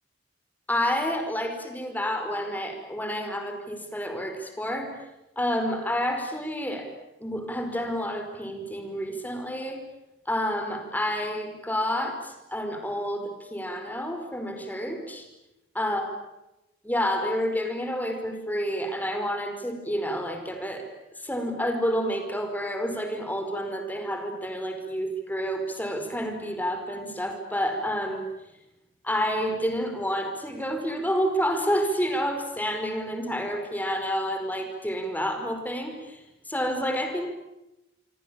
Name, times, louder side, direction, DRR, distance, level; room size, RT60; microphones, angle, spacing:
voice 1, 0.7-4.9 5.3-6.9 7.2-9.8 10.2-15.3 15.7-16.1 16.8-20.8 21.2-28.3 29.0-37.3, equal, 10° left, 6 dB, 5.0 m, -29 dB
27.5 x 24.5 x 8.9 m, 0.94 s
head